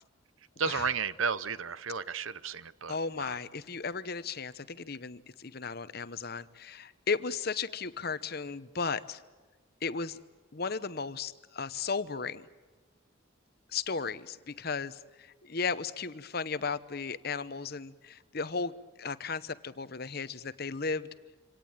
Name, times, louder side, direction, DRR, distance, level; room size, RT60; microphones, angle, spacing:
voice 1, 0.6-3.4, right 5 dB, 80° right, 17 dB, 0.9 m, -33 dB
voice 2, 2.9-9.2 9.8-10.2 10.5-12.5 13.7-21.1, left 5 dB, 50° left, 14 dB, 0.9 m, -35 dB
26.0 x 18.0 x 8.9 m, 1.4 s
head